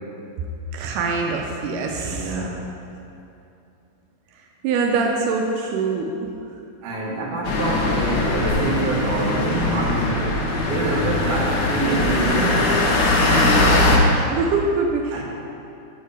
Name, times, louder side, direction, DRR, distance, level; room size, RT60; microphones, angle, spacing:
voice 1, 0.7-2.4 4.4-6.1 13.2-13.8 14.1-15.2, right 4 dB, 85° right, 1 dB, 2.2 m, -24 dB
voice 2, 2.1-2.5 6.8-12.8 15.1-15.2, right 2 dB, 55° right, -5 dB, 2.0 m, -26 dB
sound 1, 7.4-14.0, left 2 dB, 90° left, 1.2 m, -20 dB
7.6 x 5.4 x 4.8 m, 2.6 s
omnidirectional pair, 3.7 m